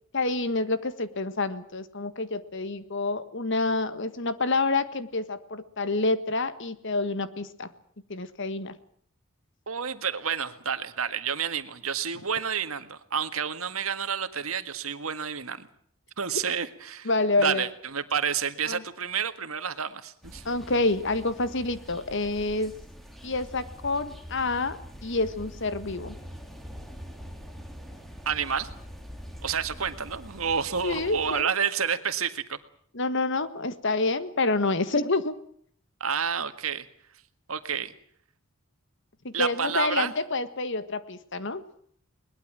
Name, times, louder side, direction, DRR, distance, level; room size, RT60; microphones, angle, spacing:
voice 1, 0.1-7.7 8.1-8.8 17.0-17.6 18.7-18.8 20.4-22.7 23.2-26.1 30.8-31.5 32.9-35.3 39.2-41.6, left 3 dB, 60° left, 12 dB, 1.6 m, -28 dB
voice 2, 9.7-15.7 16.2-17.1 17.4-20.4 28.3-28.7 29.4-32.6 36.0-36.9 37.5-37.9 39.3-40.1, right 7 dB, 90° right, 10 dB, 1.8 m, -29 dB
sound 1, 20.2-31.4, equal, ahead, 3.2 m, -44 dB
21.5 x 20.5 x 7.5 m, 0.63 s
head